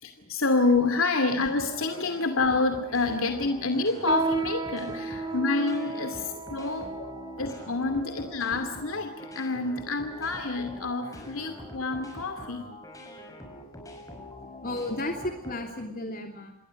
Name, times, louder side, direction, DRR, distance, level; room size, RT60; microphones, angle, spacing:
voice 1, 0.0-6.9 7.4-12.7, left 3 dB, 70° left, 7 dB, 2.5 m, -28 dB
sound 1, 1.5-15.8, left 1 dB, 15° left, 6.6 m, -44 dB
sound 2, 4.1-9.7 10.4-10.5 11.3-11.6 12.0-12.1 12.8-12.9, right 3 dB, 20° right, 2.2 m, -35 dB
voice 2, 14.4-16.5, left 1 dB, 45° left, 3 dB, 3.0 m, -35 dB
28.0 x 21.0 x 6.5 m, 0.83 s
head